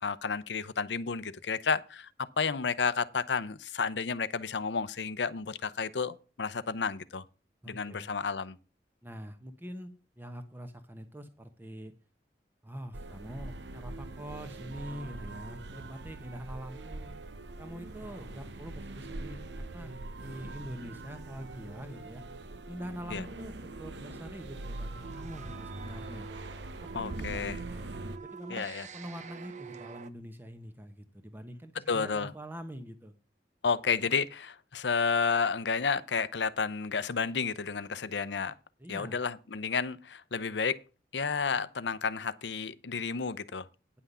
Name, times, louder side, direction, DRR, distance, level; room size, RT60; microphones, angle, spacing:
voice 1, 0.0-7.2 7.7-8.6 23.1-23.2 26.9-27.6 28.5-28.9 31.9-32.3 33.6-38.5 38.9-40.8 41.1-43.7, left 5 dB, 90° left, 0.7 m, -31 dB
voice 2, 7.6-8.1 9.0-11.9 12.6-17.1 17.6-22.2 22.7-26.3 26.8-27.5 28.2-28.7 28.9-33.1 38.8-39.2, equal, 10° right, 1.0 m, -44 dB
sound 1, 12.9-28.2, right 2 dB, 85° right, 0.9 m, -42 dB
sound 2, 24.7-30.1, right 5 dB, 40° right, 0.7 m, -46 dB
9.7 x 5.8 x 6.8 m
head